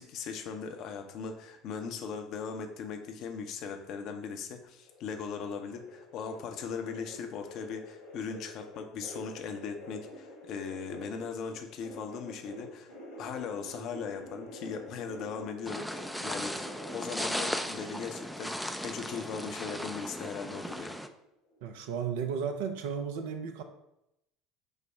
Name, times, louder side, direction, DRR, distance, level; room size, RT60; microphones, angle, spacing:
voice 1, 0.0-12.9 13.2-21.0, left 6 dB, 50° left, 5 dB, 0.5 m, -39 dB
sound 1, 4.9-11.5 11.8-20.8 21.1-21.6 21.9-22.0, left 1 dB, 75° left, 1.2 m, -48 dB
sound 2, 15.6-21.1, equal, ahead, 0.3 m, -37 dB
voice 2, 21.6-23.6, right 7 dB, 65° right, 8 dB, 0.4 m, -34 dB
5.4 x 2.0 x 4.6 m, 0.83 s
figure-of-eight pair, 65°, 0 cm